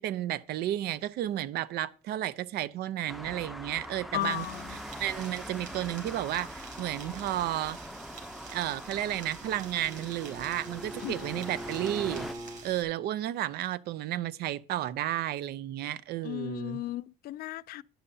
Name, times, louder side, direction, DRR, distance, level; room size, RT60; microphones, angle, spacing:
voice 1, 0.0-7.8 8.5-12.3 12.6-16.8, right 13 dB, 70° right, 0.5 m, -32 dB
Traffic noise roadway noise, 3.1-12.3, equal, ahead, 0.6 m, -43 dB
voice 2, 4.1-4.6 11.0-11.3 16.2-17.8, left 15 dB, 65° left, 0.4 m, -35 dB
sound 1, 4.2-12.8, right 5 dB, 50° right, 4.6 m, -49 dB
Bowed string instrument, 8.9-12.7, right 1 dB, 25° right, 1.1 m, -43 dB
11.0 x 10.0 x 2.7 m
cardioid pair, 110°, 17 cm